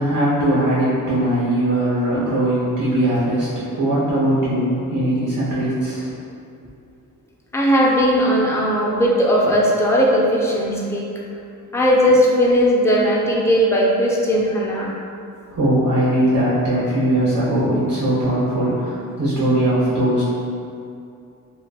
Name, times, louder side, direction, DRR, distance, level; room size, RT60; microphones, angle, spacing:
voice 1, 0.0-6.1 15.5-20.2, right 1 dB, 60° right, -10 dB, 1.1 m, -20 dB
voice 2, 7.5-11.1 11.7-14.9, equal, 10° left, -4 dB, 0.4 m, -17 dB
3.9 x 2.2 x 2.3 m, 2.5 s
cardioid pair, 95°, 34 cm